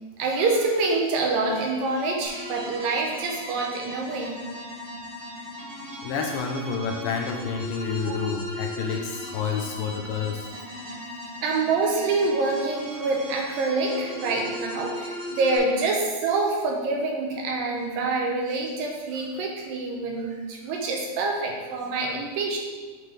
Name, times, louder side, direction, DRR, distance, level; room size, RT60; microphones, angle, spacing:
voice 1, 0.2-4.4 8.0-8.2 11.4-22.6, right 3 dB, 75° right, 0 dB, 2.2 m, -26 dB
sound 1, 2.2-15.6, equal, 40° right, 0.8 m, -38 dB
voice 2, 6.0-10.5, left 6 dB, 80° left, 2 dB, 2.2 m, -29 dB
8.6 x 3.8 x 3.1 m, 1.3 s
omnidirectional pair, 4.3 m